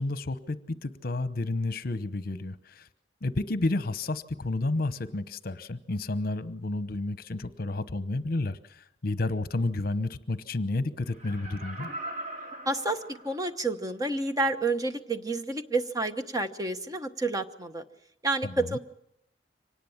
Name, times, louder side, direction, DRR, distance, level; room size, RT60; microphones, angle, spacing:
voice 1, 0.0-2.9 3.2-11.9 18.4-18.8, left 2 dB, 55° left, 13 dB, 1.0 m, -31 dB
Laughter, 11.0-13.7 14.2-14.3, right 1 dB, 45° right, 4.3 m, -41 dB
voice 2, 12.7-17.8 18.2-18.8, right 2 dB, 20° right, 8 dB, 1.1 m, -29 dB
25.0 x 19.0 x 7.2 m, 0.76 s
head